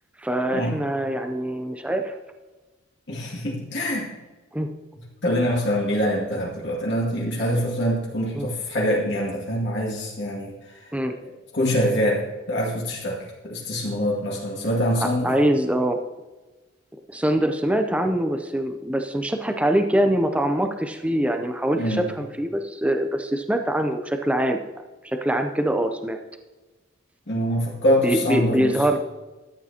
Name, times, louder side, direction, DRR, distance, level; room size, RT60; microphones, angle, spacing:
voice 1, 0.2-2.2 4.5-4.7 8.3-8.5 10.9-11.1 15.0-16.0 17.1-24.6 25.0-26.2 28.0-29.0, right 1 dB, 5° right, 6 dB, 0.5 m, -23 dB
voice 2, 3.1-4.1 5.2-10.9 11.2-15.3 21.7-22.0 27.3-28.8, equal, 60° left, -5 dB, 2.2 m, -25 dB
13.5 x 8.7 x 2.8 m, 1.2 s
head